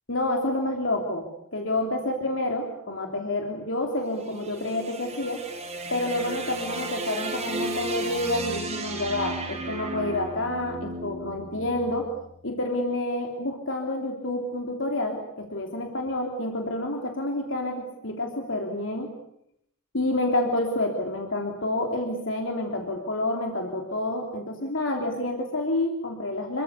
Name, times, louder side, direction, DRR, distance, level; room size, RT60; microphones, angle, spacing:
voice 1, 0.1-5.4 5.9-12.1 12.4-19.1 19.9-26.6, left 1 dB, 60° left, 2 dB, 3.2 m, -28 dB
sound 1, 4.0-12.3, right 2 dB, 30° right, 6.5 m, -34 dB
28.0 x 23.0 x 8.4 m, 0.76 s
head